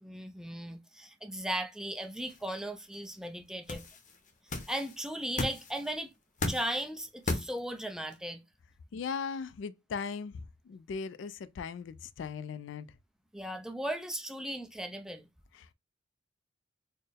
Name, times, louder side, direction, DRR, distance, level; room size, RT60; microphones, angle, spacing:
voice 1, 0.0-3.8 4.7-6.1 6.5-8.4 13.3-15.3, right 1 dB, 5° right, 0.4 m, -37 dB
sound 1, 1.9-8.2, left 2 dB, 40° left, 0.7 m, -38 dB
voice 2, 8.9-12.9 15.5-15.7, left 5 dB, 75° left, 0.3 m, -38 dB
4.3 x 2.1 x 3.3 m
head